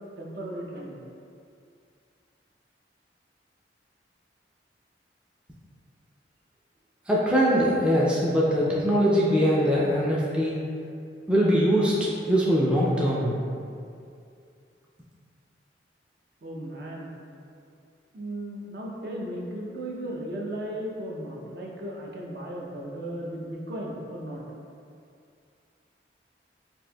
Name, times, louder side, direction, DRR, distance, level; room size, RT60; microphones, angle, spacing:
voice 1, 0.2-1.0 16.4-17.2 18.1-24.4, right 1 dB, 60° right, -3 dB, 0.5 m, -36 dB
voice 2, 7.1-10.6 11.3-13.3, equal, 5° right, -7 dB, 0.3 m, -22 dB
4.1 x 2.6 x 2.2 m, 2.4 s
head